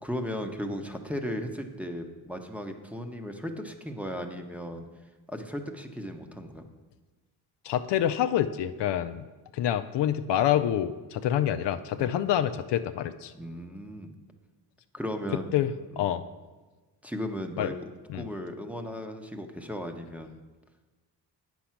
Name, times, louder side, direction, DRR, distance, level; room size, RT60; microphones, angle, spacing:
voice 1, 0.0-4.8 5.3-6.7 12.0-12.1 13.3-14.1 14.9-15.5 15.9-16.1 17.0-20.4, equal, 5° right, 5 dB, 1.0 m, -36 dB
voice 2, 7.6-9.2 9.5-13.3 15.5-15.7 16.0-16.2 17.6-17.7 18.1-18.3, left 11 dB, 70° left, 10 dB, 0.6 m, -27 dB
8.6 x 6.2 x 5.8 m, 1.3 s
supercardioid pair, 65°, 43 cm